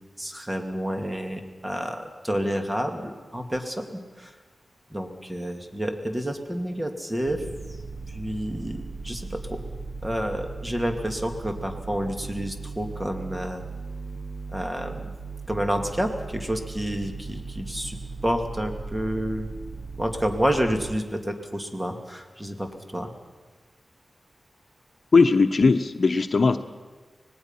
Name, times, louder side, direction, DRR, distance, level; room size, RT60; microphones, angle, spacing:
voice 1, 0.2-4.3 4.9-7.5 8.1-9.6 10.0-13.6 14.5-15.1 15.5-19.5 20.0-23.1, equal, 15° right, 4 dB, 2.7 m, -29 dB
sound 1, 7.2-21.0, right 3 dB, 60° right, 1.0 m, -38 dB
voice 2, 25.1-26.6, left 4 dB, 60° left, 8 dB, 0.9 m, -19 dB
25.0 x 19.0 x 5.8 m, 1.3 s
cardioid pair, 45°, 0 cm